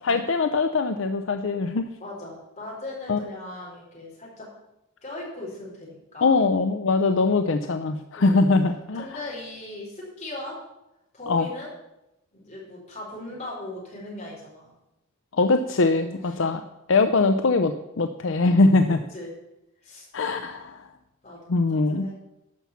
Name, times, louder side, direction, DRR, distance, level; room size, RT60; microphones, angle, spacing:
voice 1, 0.0-1.9 3.1-3.2 6.2-9.0 11.3-11.5 15.4-16.6 16.9-19.0 20.1-20.8 21.5-22.1, left 3 dB, 65° left, 8 dB, 0.6 m, -22 dB
voice 2, 2.0-4.5 5.0-6.4 8.1-8.4 8.9-10.6 11.1-11.7 12.3-14.7 16.1-16.6 19.1-19.3 19.8-20.1 20.4-20.5 21.2-21.6 21.9-22.1, left 2 dB, 35° left, -4 dB, 4.2 m, -38 dB
12.0 x 5.7 x 7.2 m, 0.90 s
head